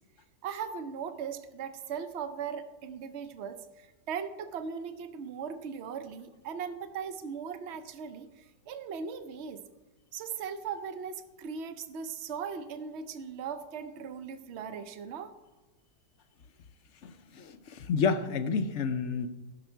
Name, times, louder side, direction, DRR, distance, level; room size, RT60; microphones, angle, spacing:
voice 1, 0.4-9.6 10.1-15.3, right 6 dB, 55° right, 10 dB, 0.8 m, -38 dB
voice 2, 17.0-19.3, left 5 dB, 65° left, 9 dB, 0.7 m, -30 dB
16.0 x 6.1 x 4.4 m, 1.1 s
omnidirectional pair, 1.9 m